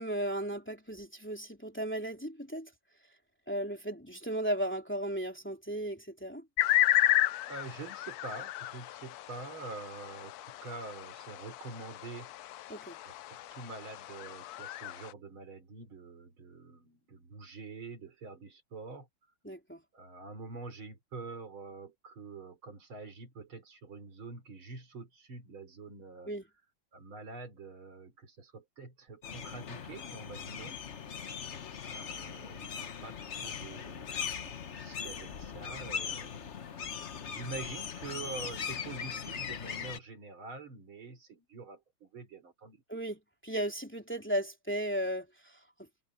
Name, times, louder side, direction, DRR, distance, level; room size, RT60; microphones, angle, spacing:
voice 1, 0.0-2.7 3.5-6.4 12.7-13.0 19.4-19.8 26.3-26.4 42.9-45.3, right 1 dB, 5° left, 3.1 m, -35 dB
sound 1, 6.6-15.1, left 13 dB, 85° left, 0.8 m, -32 dB
voice 2, 7.5-12.3 13.0-19.1 19.9-26.3 26.9-30.8 31.8-36.4 37.3-42.8, right 3 dB, 85° right, 4.5 m, -46 dB
sound 2, 29.2-40.0, left 7 dB, 45° left, 1.0 m, -40 dB
omnidirectional pair, 2.2 m